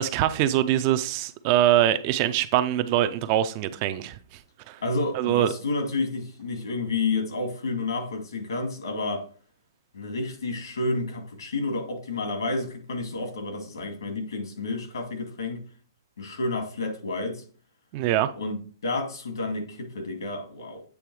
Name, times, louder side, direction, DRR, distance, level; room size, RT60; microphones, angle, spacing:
voice 1, 0.0-4.2 4.7-4.8 5.1-5.5 17.9-18.3, right 12 dB, 20° right, 0.3 m, -23 dB
voice 2, 4.8-9.2 9.9-15.6 16.2-17.4 18.4-20.8, left 3 dB, 90° left, 2.4 m, -30 dB
8.3 x 3.5 x 4.7 m
hypercardioid pair, 180°, 2 cm